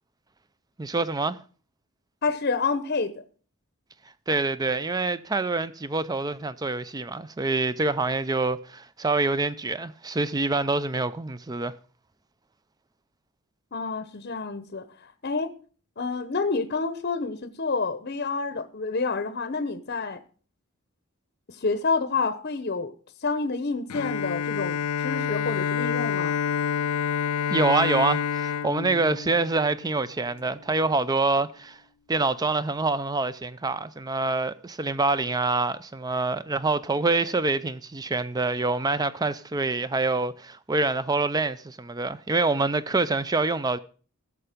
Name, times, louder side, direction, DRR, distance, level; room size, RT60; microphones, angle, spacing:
voice 1, 0.8-1.4 4.3-11.7 27.5-31.8 32.1-43.8, right 3 dB, 15° right, 0.4 m, -26 dB
voice 2, 2.2-3.2 13.7-15.5 16.0-20.2 21.5-22.9 23.2-26.4, left 4 dB, 45° left, 0.8 m, -28 dB
Bowed string instrument, 23.9-29.9, left 7 dB, 85° left, 0.5 m, -28 dB
16.0 x 6.9 x 5.0 m
head